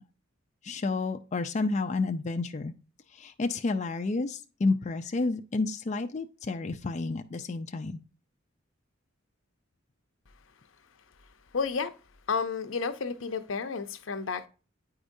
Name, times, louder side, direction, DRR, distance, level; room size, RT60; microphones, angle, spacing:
voice 1, 0.6-2.7 3.1-8.0, left 3 dB, 35° left, 0.4 m, -30 dB
voice 2, 11.5-11.9 12.3-14.5, left 5 dB, 75° left, 0.7 m, -31 dB
8.8 x 4.9 x 2.6 m
head